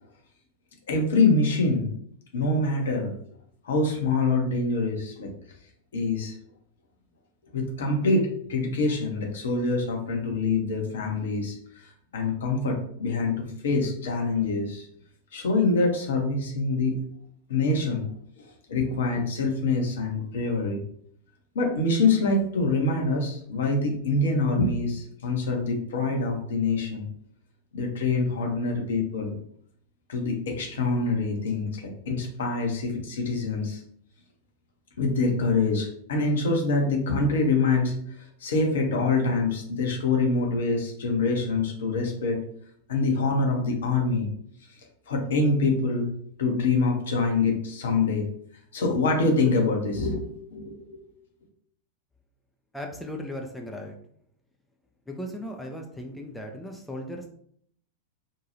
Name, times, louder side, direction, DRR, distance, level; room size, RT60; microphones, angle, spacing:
voice 1, 0.9-1.9 2.3-3.1 3.6-5.3 5.9-6.4 7.5-14.9 15.3-17.0 17.5-18.1 18.4-20.8 21.5-27.1 27.7-29.4 30.1-33.8 35.0-42.4 42.9-44.3 45.1-46.1 46.4-48.2 48.7-50.2 50.5-51.0, left 3 dB, 60° left, 1 dB, 0.7 m, -25 dB
voice 2, 52.7-54.0 55.1-57.3, left 1 dB, 5° left, 1 dB, 0.4 m, -37 dB
2.6 x 2.2 x 2.9 m, 0.66 s
figure-of-eight pair, 90°, 0 cm